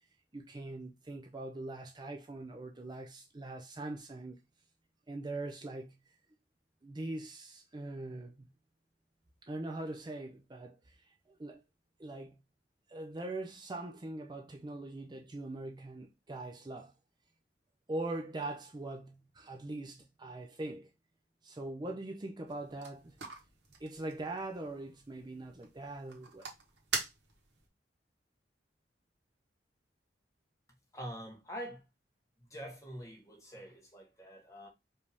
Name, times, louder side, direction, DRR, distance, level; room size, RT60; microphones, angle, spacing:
voice 1, 0.3-4.4 5.1-5.9 6.8-8.5 9.4-11.6 12.0-12.4 12.9-16.9 17.9-20.9 21.4-23.2 23.8-26.5, right 2 dB, 25° right, 0.5 m, -42 dB
sound 1, 22.5-27.7, right 5 dB, 80° right, 1.3 m, -44 dB
voice 2, 30.9-31.8 32.5-34.7, equal, 20° left, 1.3 m, -45 dB
4.9 x 2.8 x 3.4 m
head